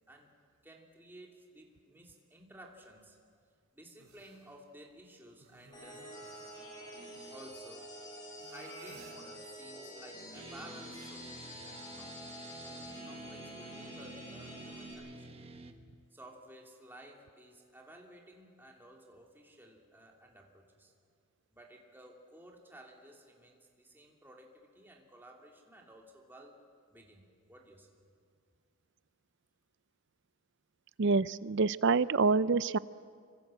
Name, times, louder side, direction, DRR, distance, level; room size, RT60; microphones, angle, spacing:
voice 1, 0.6-3.2 3.7-6.1 7.3-7.9 8.5-12.3 12.6-15.5 16.1-20.9 21.5-26.6 26.9-27.9, right 1 dB, 10° right, 0 dB, 2.8 m, -55 dB
sound 1, 4.0-4.5 5.3-7.4 8.4-9.3, right 2 dB, 80° right, 3.2 m, -57 dB
sound 2, 5.7-14.9, equal, 20° left, 7.6 m, -48 dB
sound 3, 10.3-15.7, right 2 dB, 25° right, 1.3 m, -50 dB
voice 2, 31.0-32.8, right 4 dB, 55° right, 17 dB, 0.5 m, -27 dB
26.5 x 24.5 x 7.8 m, 2.2 s
head